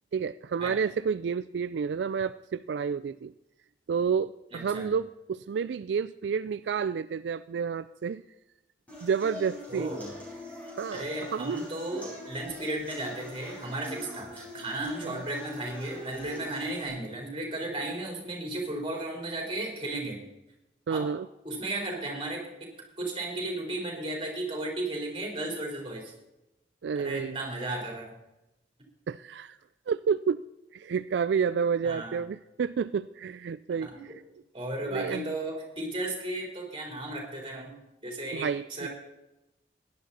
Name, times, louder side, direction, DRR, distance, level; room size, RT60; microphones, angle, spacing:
voice 1, 0.1-3.3 3.9-8.2 9.0-9.9 10.8-11.7 15.0-15.2 20.9-21.3 26.8-27.4 29.1-29.6 29.9-30.4 30.7-34.2 34.9-35.3 38.3-38.9, right 6 dB, 75° right, 14 dB, 0.3 m, -30 dB
voice 2, 4.5-4.9 9.7-10.1 10.9-20.2 20.9-21.1 21.4-22.7 23.0-26.1 26.9-28.1 31.8-32.2 33.8-34.2 34.5-37.8 38.0-38.9, right 2 dB, 30° right, -1 dB, 4.1 m, -35 dB
sound 1, 8.9-16.9, left 1 dB, 10° left, 5.2 m, -43 dB
17.0 x 11.0 x 4.2 m, 0.92 s
head